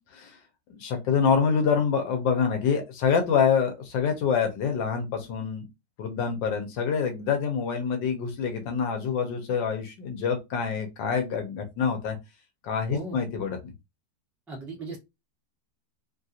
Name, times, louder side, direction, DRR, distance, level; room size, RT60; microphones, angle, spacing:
voice 1, 0.7-5.6 6.0-12.2 12.6-13.6, left 6 dB, 85° left, 4 dB, 1.4 m, -26 dB
voice 2, 12.9-13.2 14.5-15.0, right 2 dB, ahead, -2 dB, 0.4 m, -37 dB
3.3 x 2.4 x 2.7 m, 0.22 s
omnidirectional pair, 1.9 m